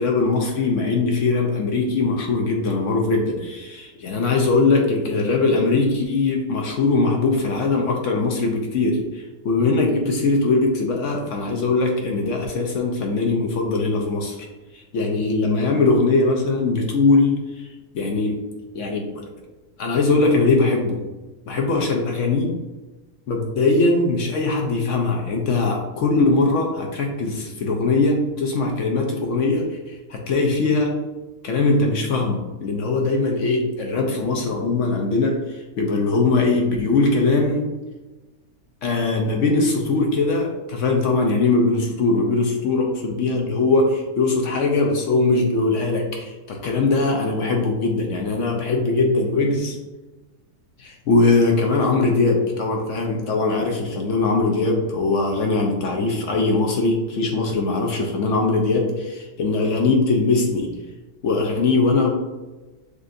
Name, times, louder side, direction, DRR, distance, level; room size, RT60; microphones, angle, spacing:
voice 1, 0.0-14.4 14.7-17.7 17.9-18.5 18.7-19.3 19.8-21.0 21.5-22.6 23.3-29.7 30.1-31.0 31.4-37.7 38.8-49.8 50.8-60.7 61.2-62.1, left 3 dB, 65° left, 1 dB, 0.9 m, -21 dB
6.5 x 2.6 x 2.6 m, 1.2 s
omnidirectional pair, 1.6 m